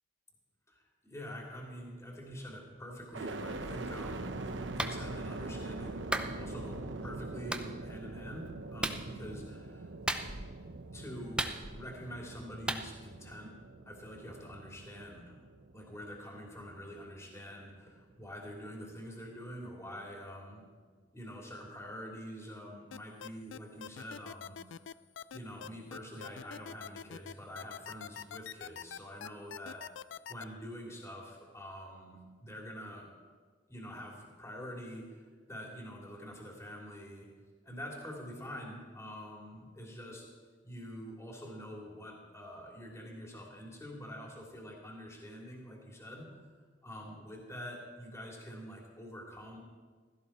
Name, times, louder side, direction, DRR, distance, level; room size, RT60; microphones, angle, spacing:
voice 1, 0.7-9.9 10.9-13.5 13.9-15.4 15.7-20.6 21.1-24.8 25.3-29.9 30.3-33.1 33.7-37.3 37.6-40.3 40.6-46.5 46.8-49.6, equal, 15° left, -1 dB, 2.8 m, -46 dB
sound 1, 3.1-17.1 17.6-18.4, right 2 dB, 90° right, 0.9 m, -43 dB
Clapping, 4.8-5.0 6.1-6.3 7.5-7.7 8.8-9.0 10.1-10.5 11.4-11.9 12.7-12.8, right 1 dB, 5° right, 0.7 m, -34 dB
sound 2, 22.9-30.4, left 8 dB, 80° left, 0.4 m, -44 dB
16.0 x 14.0 x 4.4 m, 1.5 s
head